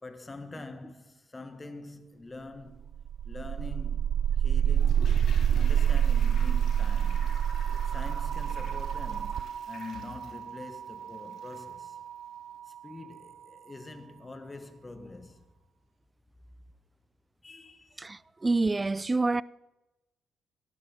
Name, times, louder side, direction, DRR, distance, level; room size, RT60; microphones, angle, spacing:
voice 1, 0.0-2.8 3.2-4.1 4.4-5.2 5.5-7.3 7.8-12.0 12.7-15.5 17.4-18.0, left 3 dB, 25° left, 1.6 m, -45 dB
sound 1, 2.8-12.8, right 9 dB, 70° right, 0.5 m, -28 dB
Toilet flush, 4.7-11.8 12.1-12.2, left 5 dB, 65° left, 3.4 m, -50 dB
voice 2, 18.0-19.4, right 3 dB, 25° right, 0.5 m, -27 dB
17.0 x 11.5 x 7.3 m
cardioid pair, 75°, 0 cm